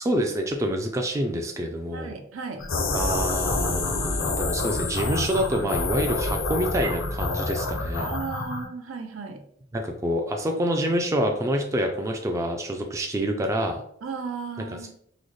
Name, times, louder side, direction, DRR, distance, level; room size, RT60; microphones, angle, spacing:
voice 1, 0.0-2.1 2.9-8.1 9.7-13.8 14.7-14.9, equal, 15° right, 3 dB, 0.3 m, -27 dB
voice 2, 1.9-2.6 8.0-9.4 14.0-14.9, right 5 dB, 80° right, 5 dB, 0.6 m, -35 dB
sound 1, 2.6-8.7, left 3 dB, 70° left, 0.5 m, -27 dB
3.8 x 2.0 x 3.2 m, 0.68 s
head